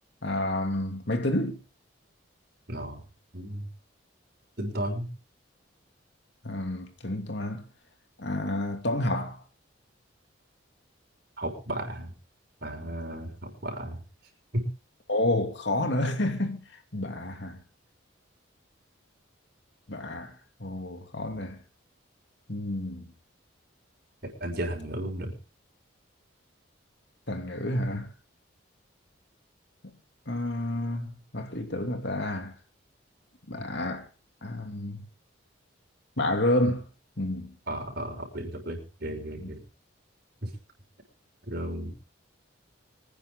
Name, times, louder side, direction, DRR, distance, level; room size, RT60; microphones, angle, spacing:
voice 1, 0.2-1.6 6.4-7.7 8.2-9.4 15.1-16.6 16.9-17.6 19.9-21.6 22.5-23.1 27.3-28.1 30.3-32.6 33.5-34.1 34.4-35.0 36.2-36.8 37.2-37.5 39.4-39.5, left 1 dB, 60° left, 2.7 m, -29 dB
voice 2, 2.7-3.0 3.3-3.7 4.6-5.1 11.4-12.1 12.6-14.0 14.5-14.7 24.2-25.3 37.7-39.6 40.4-40.5 41.4-41.9, right 1 dB, 50° right, 6.2 m, -34 dB
26.0 x 10.0 x 3.8 m
head